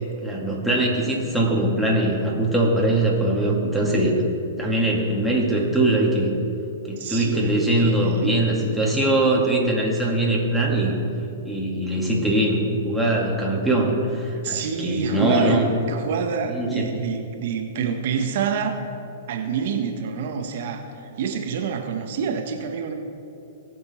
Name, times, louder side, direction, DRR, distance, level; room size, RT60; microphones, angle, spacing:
voice 1, 0.2-4.1 4.6-6.3 6.9-10.9 11.4-15.7 16.5-16.9, right 1 dB, ahead, -2 dB, 2.1 m, -22 dB
voice 2, 7.0-8.5 14.4-18.8 19.3-22.9, right 6 dB, 60° right, 5 dB, 1.0 m, -27 dB
19.0 x 6.7 x 4.3 m, 2.8 s
hypercardioid pair, 130°, 0 cm